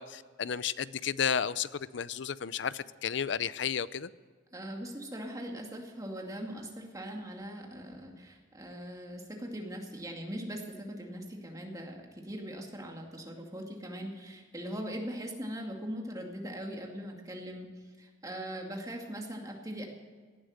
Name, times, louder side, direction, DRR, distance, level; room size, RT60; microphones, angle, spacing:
voice 1, 0.0-4.1, left 7 dB, 65° left, 17 dB, 0.5 m, -33 dB
voice 2, 4.5-17.7 18.0-19.9, equal, 20° right, 1 dB, 2.3 m, -40 dB
18.0 x 11.5 x 6.5 m, 1.5 s
head